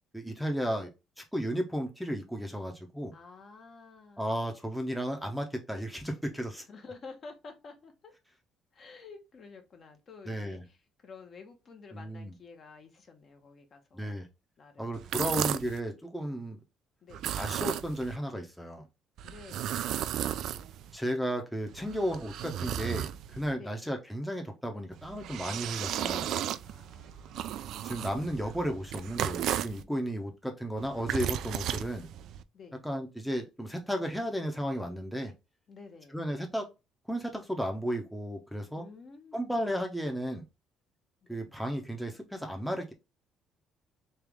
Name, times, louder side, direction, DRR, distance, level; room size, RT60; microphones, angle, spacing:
voice 1, 0.1-0.9 1.2-3.1 4.2-6.6 10.3-10.6 11.9-12.3 13.9-14.3 14.8-16.6 17.4-18.8 20.9-26.3 27.8-32.1 32.8-35.3 36.1-36.7 37.1-38.9 39.3-40.4 41.3-42.9, equal, ahead, 0.7 m, -34 dB
voice 2, 3.1-4.4 6.7-8.1 8.7-10.8 11.0-14.3 14.6-15.6 17.0-17.2 19.2-20.7 23.5-23.8 26.6-27.6 32.5-32.8 35.7-36.2 38.8-39.6 41.2-41.5, left 4 dB, 40° left, 0.9 m, -51 dB
sound 1, 14.9-15.8 17.1-18.2 19.2-21.0 21.7-23.5 24.9-29.8 30.8-32.4, right 11 dB, 70° right, 0.3 m, -34 dB
3.3 x 3.0 x 3.5 m
cardioid pair, 125°, 0 cm